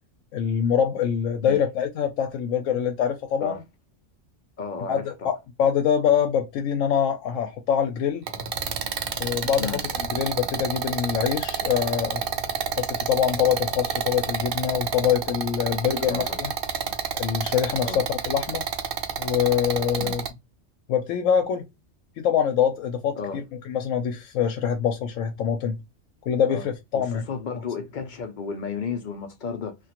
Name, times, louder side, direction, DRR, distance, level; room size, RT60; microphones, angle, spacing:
voice 1, 0.3-3.6 4.9-5.3 5.6-8.3 9.2-12.2 12.7-16.5 17.1-18.6 19.2-20.2 20.9-21.7 22.2-25.8 26.3-27.2 27.5-27.6, left 8 dB, 85° left, 0.9 m, -24 dB
voice 2, 4.6-5.3 9.6-9.8 16.1-16.4 17.8-18.0 20.0-20.1 23.2-23.4 26.5-26.6 26.9-29.7, left 5 dB, 55° left, 0.5 m, -33 dB
sound 1, 8.3-20.3, right 7 dB, 60° right, 0.6 m, -29 dB
2.9 x 2.4 x 2.8 m
omnidirectional pair, 1.3 m